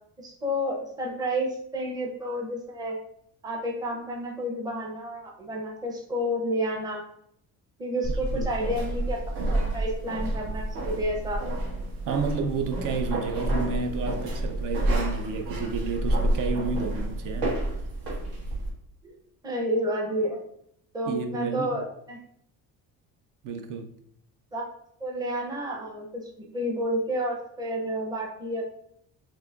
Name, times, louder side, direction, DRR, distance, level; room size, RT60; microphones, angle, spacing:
voice 1, 0.2-3.0 3.4-7.0 7.8-11.4 19.0-19.1 19.4-20.4 20.9-22.2 24.5-24.7 25.0-28.6, equal, 10° right, 0.6 m, -30 dB
sound 1, 8.0-18.7, right 1 dB, 80° right, 1.6 m, -29 dB
voice 2, 8.1-8.5 9.4-9.5 12.0-17.6 21.1-21.7 23.4-23.9, right 5 dB, 60° right, 0.6 m, -31 dB
5.9 x 3.0 x 2.4 m
cardioid pair, 160°, 37 cm